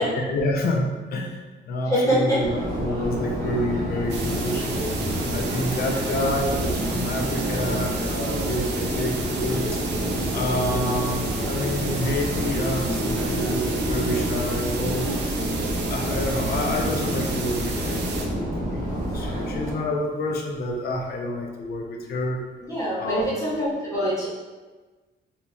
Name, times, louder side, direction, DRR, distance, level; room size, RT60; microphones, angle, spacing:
voice 1, 0.1-5.0 5.3-9.8 10.3-15.1 15.9-22.4 23.0-23.6, left 1 dB, 55° left, 1 dB, 0.5 m, -28 dB
voice 2, 1.9-2.4 22.7-24.3, equal, 15° left, -9 dB, 0.8 m, -24 dB
Subway metro underground, 2.4-19.7, equal, 45° right, 1.2 m, -28 dB
sound 1, 4.1-18.2, right 4 dB, 70° right, 0.5 m, -34 dB
4.1 x 2.9 x 2.3 m, 1.3 s
wide cardioid pair, 175°, 19 cm